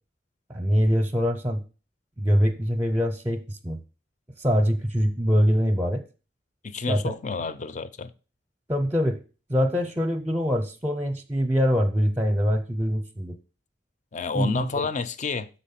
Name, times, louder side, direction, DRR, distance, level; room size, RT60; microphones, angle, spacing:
voice 1, 0.5-1.6 2.2-3.8 4.4-6.0 6.9-7.1 8.7-9.2 9.5-13.3 14.3-14.7, equal, 15° right, 0.6 m, -23 dB
voice 2, 6.6-8.1 14.1-15.5, left 4 dB, 45° left, 0.5 m, -29 dB
6.0 x 4.1 x 5.7 m
head